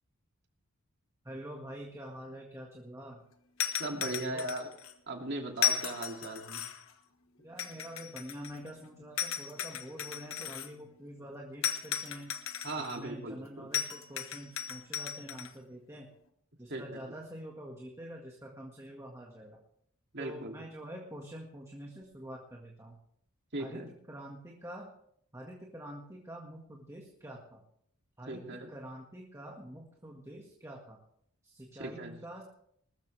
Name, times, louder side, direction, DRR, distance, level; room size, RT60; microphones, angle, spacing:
voice 1, 1.2-3.2 4.0-4.5 7.4-12.3 12.8-16.1 16.6-19.6 20.2-23.0 23.6-23.8 24.1-24.9 25.3-27.6 28.2-31.0 31.4-32.4, equal, 15° right, -1 dB, 1.8 m, -46 dB
sound 1, 3.6-4.9 5.6-6.9 7.6-8.7 9.2-10.7 11.6-13.0 13.7-15.5, left 9 dB, 75° left, 1.2 m, -35 dB
voice 2, 3.8-4.7 5.1-6.6 12.6-13.7 16.7-16.8 20.1-20.5 23.5-23.9 28.3-28.7 31.8-32.2, right 2 dB, 55° right, 2 dB, 2.5 m, -38 dB
20.0 x 13.5 x 3.4 m, 0.69 s
head